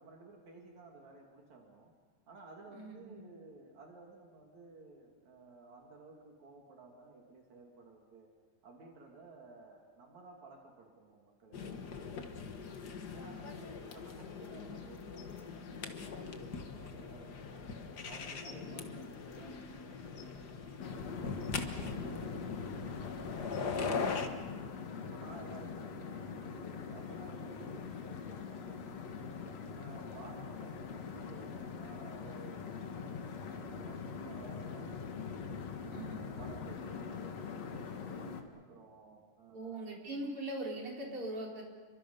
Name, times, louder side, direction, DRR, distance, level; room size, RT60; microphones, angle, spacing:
voice 1, 0.0-1.9 2.3-8.3 8.6-12.5 13.1-17.7 18.0-20.9 21.2-24.7 25.0-29.3 29.7-32.6 33.4-35.3 35.8-38.0 38.5-40.2, right 3 dB, 70° right, 0 dB, 3.7 m, -55 dB
voice 2, 2.7-3.2 21.7-22.1 35.9-36.2 39.5-41.6, right 1 dB, 45° right, -2 dB, 5.1 m, -41 dB
sound 1, 11.5-24.3, left 5 dB, 45° left, 1.4 m, -41 dB
sound 2, 20.8-38.4, left 5 dB, 65° left, 2.7 m, -43 dB
29.5 x 23.5 x 5.4 m, 1.4 s
omnidirectional pair, 3.4 m